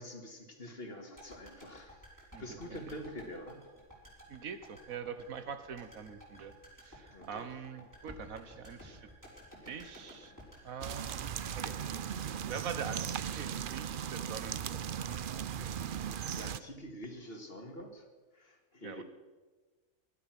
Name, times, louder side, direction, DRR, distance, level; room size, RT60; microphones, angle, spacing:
voice 1, 0.0-2.0 2.4-3.6 7.1-7.5 15.8-16.1 16.3-18.0 18.3-19.0, equal, 45° left, 4 dB, 2.1 m, -46 dB
sound 1, 1.2-13.3 13.6-13.7, equal, 10° right, 5.0 m, -54 dB
voice 2, 2.3-2.8 4.3-6.5 6.8-9.1 9.6-10.3 10.6-12.0 12.5-15.0 18.8-19.0, right 6 dB, 75° right, 11 dB, 1.5 m, -44 dB
sound 2, 10.8-16.6, right 8 dB, 55° right, 0.6 m, -37 dB
19.5 x 12.0 x 6.0 m, 1.3 s
omnidirectional pair, 1.5 m